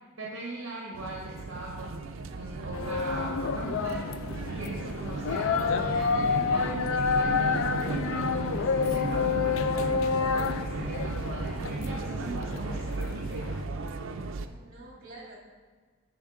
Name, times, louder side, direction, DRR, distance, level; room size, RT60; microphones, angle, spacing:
voice 1, 0.2-2.0 2.3-4.0 4.5-13.4, right 2 dB, 70° right, -2 dB, 0.9 m, -40 dB
sound 1, 0.9-14.5, right 3 dB, 90° right, 0.4 m, -35 dB
sound 2, 2.7-13.6, left 6 dB, 80° left, 0.4 m, -29 dB
voice 2, 14.4-15.4, right 2 dB, 45° right, -2 dB, 1.9 m, -48 dB
7.1 x 4.9 x 3.7 m, 1.5 s
head